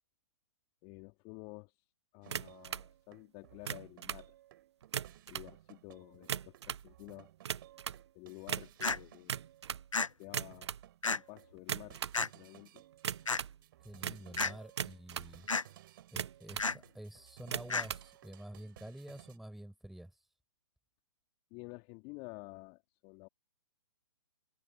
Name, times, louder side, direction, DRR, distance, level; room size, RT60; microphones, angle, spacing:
voice 1, 0.8-1.8 2.1-4.3 5.3-7.3 8.1-9.4 10.2-10.7 11.1-12.8 14.0-14.6 21.5-23.3, left 30 dB, 30° left, 2.1 m, -51 dB
sound 1, 2.2-19.4, right 14 dB, 45° right, 4.0 m, -59 dB
sound 2, 2.3-2.9 3.5-4.3 4.8-5.5 6.1-6.9 7.4-8.0 8.5-9.9 10.2-10.8 11.6-12.2 13.0-13.6 14.0-15.3 16.0-16.7 17.4-18.1, right 8 dB, 60° right, 0.9 m, -39 dB
sound 3, 8.8-9.0 9.9-10.1 11.0-11.2 12.1-12.3 13.2-13.4 14.4-14.5 15.5-15.6 16.6-16.8 17.7-17.9, left 4 dB, 90° left, 0.8 m, -31 dB
voice 2, 13.8-15.5 16.1-20.2, right 1 dB, ahead, 5.8 m, -49 dB
figure-of-eight pair, 125°, 16 cm